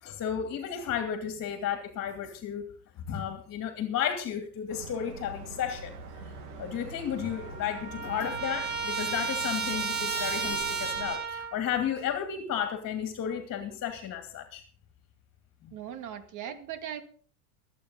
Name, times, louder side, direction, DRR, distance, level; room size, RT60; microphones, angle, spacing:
voice 1, 0.0-2.7 3.1-6.0 6.6-14.6 15.6-15.7, left 8 dB, 35° left, 6 dB, 2.6 m, -33 dB
sound 1, 4.7-11.2, right 4 dB, 65° right, 3.2 m, -44 dB
Trumpet, 6.8-6.9 7.2-11.6, right 5 dB, 20° right, 3.0 m, -33 dB
voice 2, 15.7-17.0, right 10 dB, 40° right, 9 dB, 2.3 m, -39 dB
22.5 x 8.9 x 4.0 m, 0.43 s
hypercardioid pair, 100°, 45 cm